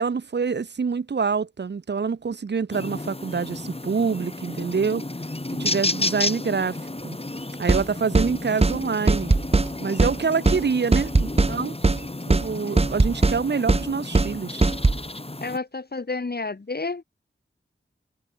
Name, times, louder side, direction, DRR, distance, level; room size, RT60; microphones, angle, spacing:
voice 1, 0.0-5.0 5.6-6.8 7.0-7.2 7.6-9.4 9.8-11.7 12.3-14.6, right 5 dB, 55° right, 0.9 m, -26 dB
sound 1, 2.7-15.6, left 2 dB, 30° left, 7.5 m, -32 dB
sound 2, 7.7-7.9 8.2-8.3 8.6-8.8 9.1-9.7 10.0-10.2 10.5-10.6 10.9-11.5 11.8-12.0 12.3-12.5 12.8-13.4 13.7-13.9 14.2-14.3 14.6-15.0, right 3 dB, 30° right, 1.0 m, -19 dB
voice 2, 10.3-10.8 15.4-17.0, left 3 dB, 50° left, 2.1 m, -31 dB
wide cardioid pair, 60°, 21 cm